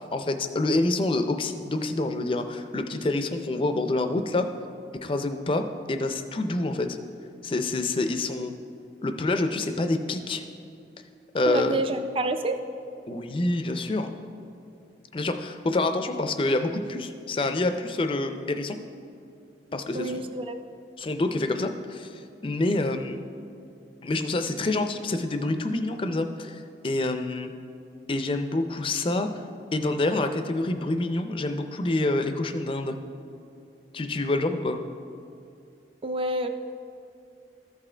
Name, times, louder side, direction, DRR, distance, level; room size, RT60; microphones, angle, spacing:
voice 1, 0.0-4.5 5.0-7.0 7.4-8.6 9.0-10.4 11.3-11.8 13.1-14.1 15.1-18.8 19.7-20.3 21.0-23.2 24.0-27.5 28.1-29.3 29.7-33.0 33.9-34.8, left 2 dB, 30° left, 8 dB, 0.4 m, -27 dB
voice 2, 11.5-12.6 19.9-20.6 36.0-36.5, right 2 dB, 30° right, 8 dB, 0.4 m, -28 dB
14.0 x 6.1 x 3.3 m, 2.5 s
head